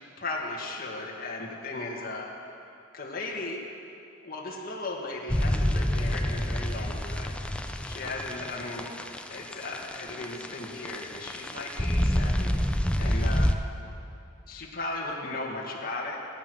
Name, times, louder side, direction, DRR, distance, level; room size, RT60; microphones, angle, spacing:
voice 1, 0.2-2.6 2.9-3.6 4.2-7.4 7.8-12.5 13.0-13.5 14.5-16.2, left 2 dB, 45° left, -3 dB, 1.9 m, -36 dB
sound 1, 5.3-13.6, equal, 5° left, 0.5 m, -27 dB
19.5 x 9.7 x 6.3 m, 2.6 s
head